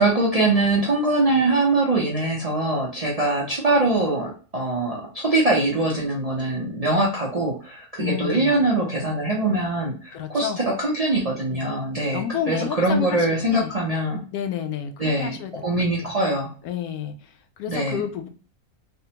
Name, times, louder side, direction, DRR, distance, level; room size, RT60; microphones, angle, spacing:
voice 1, 0.0-14.2 15.0-16.5 17.7-18.0, right 2 dB, 50° right, -4 dB, 0.4 m, -23 dB
voice 2, 8.0-8.6 10.1-10.6 11.5-11.8 12.1-13.8 14.3-15.6 16.0-16.1 16.6-18.3, left 8 dB, 85° left, 7 dB, 1.1 m, -30 dB
3.4 x 2.1 x 2.8 m, 0.40 s
omnidirectional pair, 1.5 m